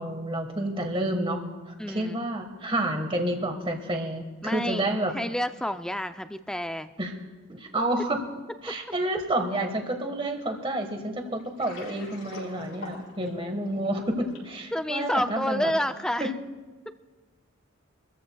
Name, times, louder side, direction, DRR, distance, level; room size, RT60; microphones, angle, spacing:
voice 1, 0.0-1.4 1.7-5.1 7.0-7.1 7.5-8.2 8.6-15.7 16.2-16.3, right 1 dB, 25° right, 4 dB, 1.4 m, -29 dB
voice 2, 1.8-2.2 4.4-4.9 5.1-6.9 14.7-16.3, left 1 dB, 5° left, 10 dB, 0.4 m, -29 dB
Water, 11.4-14.6, left 2 dB, 75° left, 5.9 m, -44 dB
26.0 x 14.5 x 2.3 m, 1.3 s
head